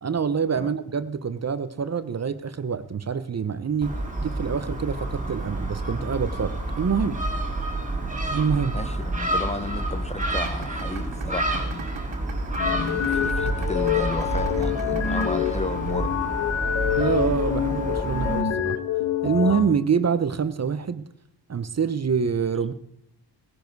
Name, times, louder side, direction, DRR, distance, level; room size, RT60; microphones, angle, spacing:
voice 1, 0.0-7.2 8.3-8.8 17.0-18.8 19.2-21.0 21.5-22.7, right 6 dB, 35° right, 13 dB, 0.8 m, -26 dB
Gull seagull, 3.8-18.4, right 1 dB, 15° right, 2.4 m, -29 dB
voice 2, 8.7-11.9 12.6-16.2, left 2 dB, 15° left, 11 dB, 0.7 m, -33 dB
sound 1, 10.2-16.2, right 8 dB, 75° right, 2.1 m, -41 dB
sound 2, 12.6-19.6, left 9 dB, 85° left, 1.5 m, -26 dB
18.0 x 10.5 x 4.7 m, 0.73 s
cardioid pair, 90°, 46 cm